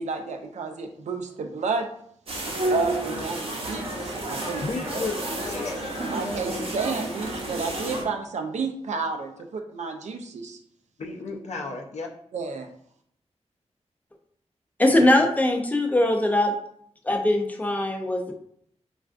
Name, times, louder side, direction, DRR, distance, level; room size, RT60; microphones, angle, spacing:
voice 1, 0.0-1.9 2.7-4.6 5.0-5.1 6.1-10.6 12.3-12.7, right 4 dB, 80° right, 5 dB, 0.4 m, -31 dB
sound 1, 2.3-8.0, right 1 dB, 55° right, 0.7 m, -30 dB
voice 2, 4.6-5.8 11.0-12.1 15.0-15.3, left 3 dB, 75° left, 0 dB, 0.5 m, -33 dB
voice 3, 14.8-16.5 17.0-18.3, left 1 dB, 15° left, 3 dB, 0.4 m, -21 dB
3.3 x 2.4 x 2.4 m, 0.66 s
wide cardioid pair, 115°, 12 cm